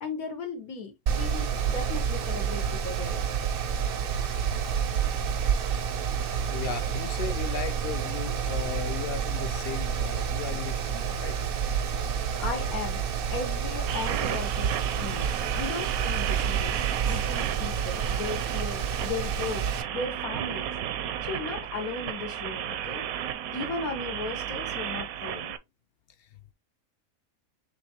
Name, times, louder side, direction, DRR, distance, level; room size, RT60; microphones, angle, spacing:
voice 1, 0.0-3.2 12.1-13.0 13.3-16.8 17.1-19.6 19.9-20.7 21.2-23.1 23.5-25.5, left 4 dB, 85° left, 1.6 m, -36 dB
Mechanical fan, 1.1-19.8, right 7 dB, 60° right, 0.6 m, -29 dB
voice 2, 6.0-11.4 11.7-11.8 23.5-23.6 26.2-26.3, left 7 dB, 60° left, 0.6 m, -37 dB
sound 1, 13.9-25.6, right 10 dB, 80° right, 1.0 m, -33 dB
5.1 x 3.4 x 2.8 m
omnidirectional pair, 1.5 m